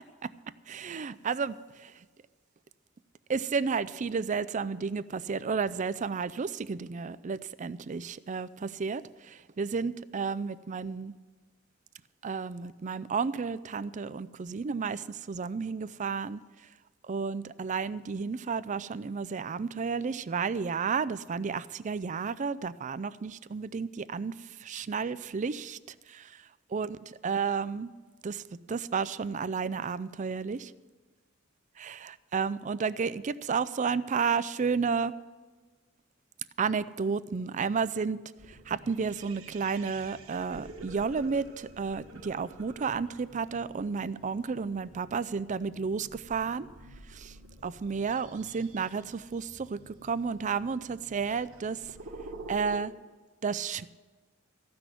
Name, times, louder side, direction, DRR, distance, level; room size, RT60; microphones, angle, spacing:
voice 1, 0.7-1.9 3.3-11.1 12.2-16.4 17.1-24.4 24.6-25.8 26.1-26.3 26.7-27.0 27.2-27.9 28.2-28.4 28.7-30.7 31.8-35.1 36.6-38.2 38.7-46.7 47.1-47.3 47.6-51.8 52.5-52.9 53.4-53.9, right 5 dB, 35° right, 16 dB, 0.4 m, -32 dB
sound 1, 38.4-52.8, right 2 dB, 85° right, 1.6 m, -49 dB
15.0 x 6.1 x 9.1 m, 1.4 s
head